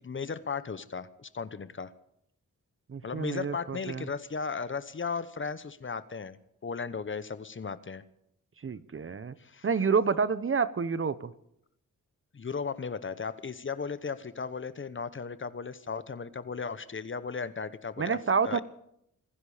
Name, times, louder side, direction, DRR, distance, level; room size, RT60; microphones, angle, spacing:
voice 1, 0.0-1.9 3.0-6.4 6.6-8.0 9.4-9.7 12.3-18.2 18.4-18.6, left 5 dB, 35° left, 14 dB, 0.9 m, -36 dB
voice 2, 2.9-4.1 8.6-9.3 9.6-11.3 18.0-18.6, right 5 dB, 40° right, 15 dB, 0.9 m, -28 dB
26.0 x 10.5 x 5.0 m, 0.75 s
cardioid pair, 80°, 33 cm